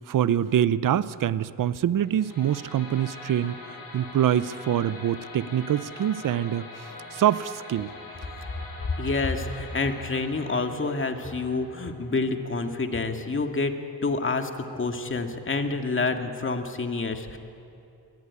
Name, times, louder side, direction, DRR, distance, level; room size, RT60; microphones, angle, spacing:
voice 1, 0.0-7.9, right 10 dB, 60° right, 17 dB, 0.7 m, -25 dB
sound 1, 2.0-13.1, left 2 dB, 65° left, 7.8 m, -44 dB
voice 2, 9.0-13.7 14.0-17.4, left 3 dB, 35° left, 5 dB, 2.1 m, -28 dB
23.0 x 18.5 x 9.7 m, 2.7 s
cardioid pair, 90°, 37 cm